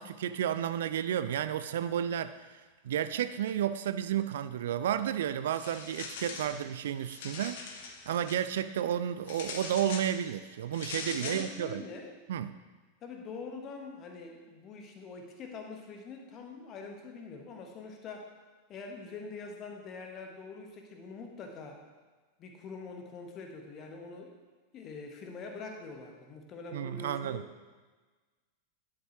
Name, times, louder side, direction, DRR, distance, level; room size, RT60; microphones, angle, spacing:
voice 1, 0.0-2.3 2.8-7.7 8.1-11.8 12.3-12.5 26.7-27.4, right 10 dB, 60° right, 13 dB, 0.3 m, -32 dB
sound 1, 5.5-6.6 7.0-8.4 9.3-10.1 10.7-11.5, left 5 dB, 55° left, 1.0 m, -41 dB
voice 2, 11.2-12.2 13.0-18.3 18.7-21.8 22.4-24.3 24.7-27.4, left 4 dB, 30° left, 3 dB, 1.3 m, -44 dB
11.0 x 7.5 x 3.1 m, 1.3 s
figure-of-eight pair, 90°, 0 cm